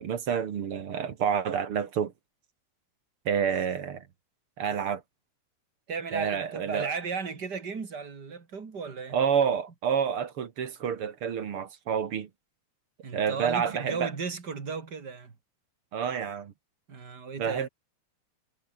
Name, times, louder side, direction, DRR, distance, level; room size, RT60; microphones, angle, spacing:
voice 1, 0.0-2.1 3.3-4.0 4.6-5.0 6.1-6.9 9.1-12.3 13.1-14.1 15.9-16.5 17.4-17.7, right 7 dB, 55° right, 2.1 m, -28 dB
voice 2, 5.9-9.2 13.0-15.4 16.9-17.7, right 5 dB, 35° right, 3.0 m, -35 dB
omnidirectional pair, 3.5 m